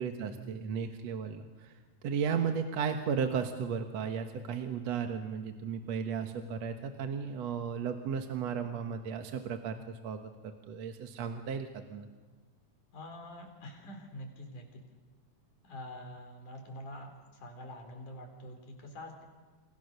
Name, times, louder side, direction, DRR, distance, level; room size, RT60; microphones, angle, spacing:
voice 1, 0.0-1.7 2.0-12.1, right 6 dB, 65° right, 6 dB, 2.4 m, -35 dB
voice 2, 12.9-14.8 15.6-17.1 17.4-19.2, left 1 dB, 85° left, 4 dB, 5.7 m, -46 dB
29.5 x 28.5 x 6.7 m, 1.3 s
omnidirectional pair, 3.5 m